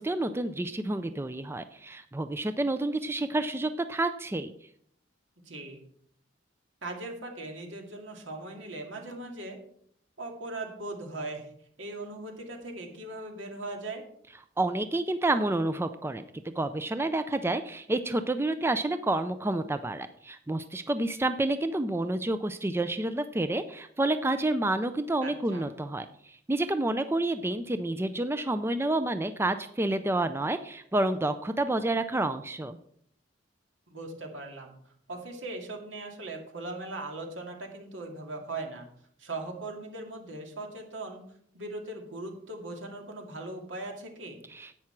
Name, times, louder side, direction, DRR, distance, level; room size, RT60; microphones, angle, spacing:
voice 1, 0.0-4.5 14.6-32.8 44.5-44.7, right 2 dB, 15° right, 10 dB, 0.4 m, -29 dB
voice 2, 5.4-5.8 6.8-9.6 10.2-11.5 11.8-14.0 25.2-25.7 33.9-34.8 35.1-38.9 39.2-41.2 41.5-44.4, right 2 dB, 80° right, 2 dB, 2.3 m, -39 dB
10.5 x 8.5 x 4.5 m, 0.66 s
head